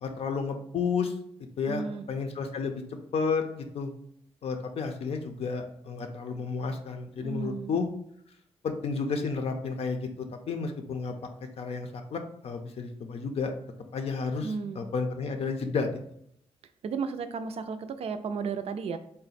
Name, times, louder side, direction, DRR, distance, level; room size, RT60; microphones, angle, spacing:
voice 1, 0.0-1.1 1.6-2.8 3.1-3.9 4.4-7.9 8.6-11.1 11.6-13.5 13.9-15.9, left 5 dB, 65° left, 5 dB, 0.5 m, -31 dB
voice 2, 1.7-2.1 7.2-7.8 14.4-14.8 16.8-19.0, right 5 dB, 65° right, 10 dB, 0.4 m, -34 dB
3.8 x 2.1 x 4.1 m, 0.70 s
wide cardioid pair, 135°, 11 cm